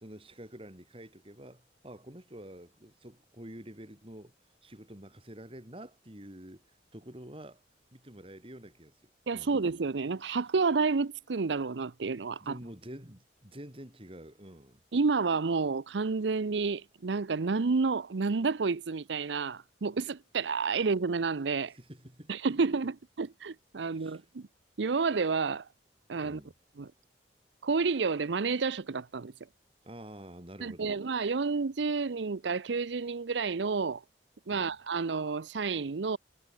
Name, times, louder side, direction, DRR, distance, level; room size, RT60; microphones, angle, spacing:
voice 1, 0.0-4.3 4.6-6.6 6.9-7.6 7.9-9.6 12.4-14.8 21.7-22.3 23.8-24.2 26.2-26.5 29.8-31.0 34.5-34.7, right 1 dB, 30° right, 4.9 m, -48 dB
voice 2, 9.3-12.6 14.9-21.7 22.3-24.5 24.8-25.7 26.1-26.4 26.8-26.9 27.6-29.3 30.6-34.0 34.5-36.2, right 4 dB, 90° right, 0.6 m, -30 dB
head